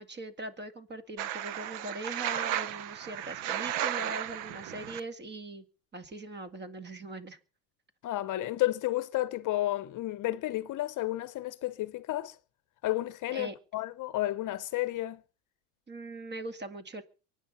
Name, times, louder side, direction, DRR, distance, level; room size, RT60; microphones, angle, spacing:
voice 1, 0.0-5.7 5.9-7.4 13.3-13.6 15.9-17.0, right 2 dB, 25° right, 2.1 m, -41 dB
sound 1, 1.2-5.0, right 11 dB, 70° right, 1.3 m, -34 dB
voice 2, 8.0-12.4 12.8-15.2, left 16 dB, 40° left, 0.9 m, -32 dB
23.5 x 9.8 x 5.6 m
supercardioid pair, 125°, 45 cm